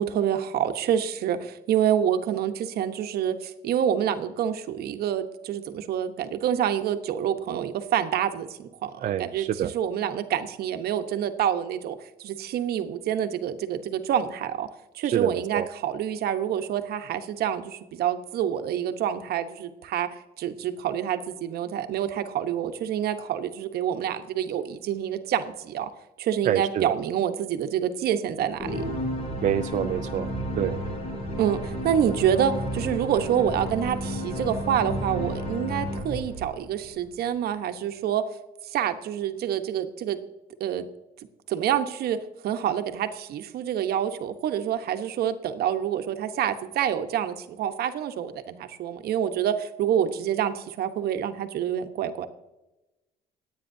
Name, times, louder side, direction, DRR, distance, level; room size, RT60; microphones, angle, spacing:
voice 1, 0.0-14.7 14.9-20.1 20.4-25.9 26.2-28.9 31.4-38.2 38.6-40.2 40.6-40.9 41.5-42.2 42.4-52.3, right 9 dB, 65° right, 8 dB, 1.1 m, -27 dB
voice 2, 9.0-9.7 15.0-15.7 26.4-26.9 29.4-30.8, right 10 dB, 50° right, 7 dB, 0.5 m, -27 dB
sound 1, 28.6-37.0, equal, 45° left, 4.2 m, -32 dB
26.0 x 9.0 x 2.7 m, 1.0 s
cardioid pair, 110°, 17 cm